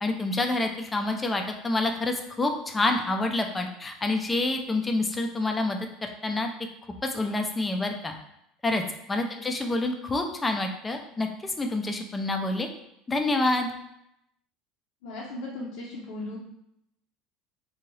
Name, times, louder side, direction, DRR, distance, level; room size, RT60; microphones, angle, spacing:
voice 1, 0.0-6.5 7.1-8.1 8.6-8.8 9.1-12.7 13.1-13.7, left 2 dB, 15° left, 4 dB, 0.4 m, -27 dB
voice 2, 15.0-16.4, left 2 dB, 70° left, -4 dB, 0.6 m, -37 dB
2.7 x 2.7 x 3.1 m, 0.78 s
cardioid pair, 135°, 0 cm